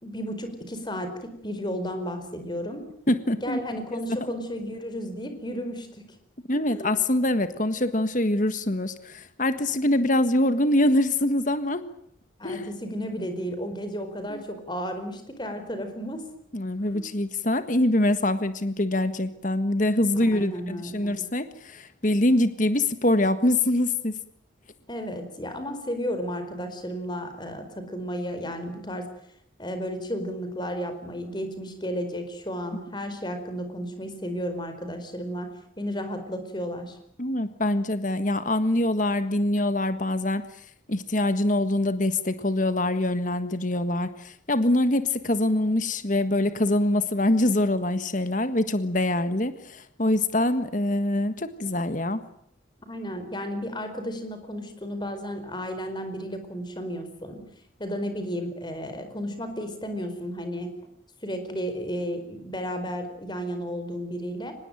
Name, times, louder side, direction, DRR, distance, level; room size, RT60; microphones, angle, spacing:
voice 1, 0.0-2.8 3.3-6.1 6.7-6.9 12.4-16.2 16.9-17.0 20.3-21.2 24.9-29.1 29.6-37.0 52.9-57.4 57.8-60.7 61.2-64.5, equal, 20° left, 8 dB, 4.8 m, -33 dB
voice 2, 3.1-3.6 3.9-4.0 6.5-11.8 12.4-12.7 14.3-14.4 16.5-24.2 37.2-40.4 40.9-52.2, left 1 dB, 40° left, 11 dB, 1.6 m, -24 dB
24.5 x 20.5 x 9.1 m, 0.68 s
head